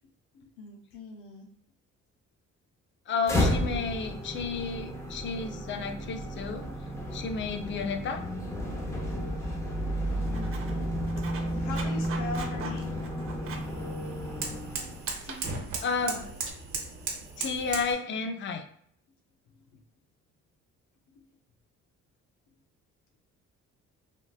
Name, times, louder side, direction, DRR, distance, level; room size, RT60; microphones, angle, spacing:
voice 1, 0.3-1.5 10.2-13.2 14.8-15.7 16.0-16.4 19.5-19.8 21.1-21.3, left 3 dB, 90° left, 1 dB, 0.5 m, -43 dB
voice 2, 3.1-6.7 7.1-8.2 15.8-16.2 17.4-18.6, left 5 dB, 40° left, 7 dB, 0.5 m, -32 dB
sound 1, 3.2-15.2, equal, 10° left, 0.7 m, -32 dB
Writing, 10.0-16.5, right 4 dB, 45° right, 0.5 m, -44 dB
sound 2, 11.4-17.9, right 4 dB, 70° right, 0.9 m, -39 dB
3.6 x 2.4 x 2.3 m, 0.63 s
cardioid pair, 90°, 30 cm